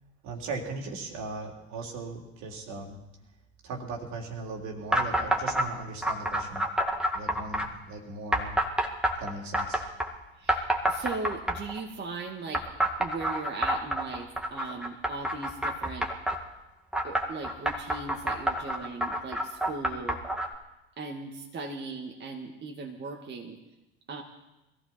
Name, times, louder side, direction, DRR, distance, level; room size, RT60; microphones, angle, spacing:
voice 1, 0.2-3.0 3.6-6.7 7.1-8.6 9.2-9.8, right 3 dB, 60° right, 1 dB, 3.3 m, -38 dB
sound 1, 4.9-5.7 6.0-7.7 8.3-10.1 10.5-11.8 12.5-16.4 16.9-20.5, right 1 dB, 5° right, 2.1 m, -28 dB
voice 2, 10.4-12.7 13.0-16.1 17.0-20.2 21.0-23.6 24.1-24.2, right 3 dB, 35° right, 1 dB, 2.1 m, -38 dB
22.0 x 15.0 x 4.3 m, 0.97 s
hypercardioid pair, 75°, 32 cm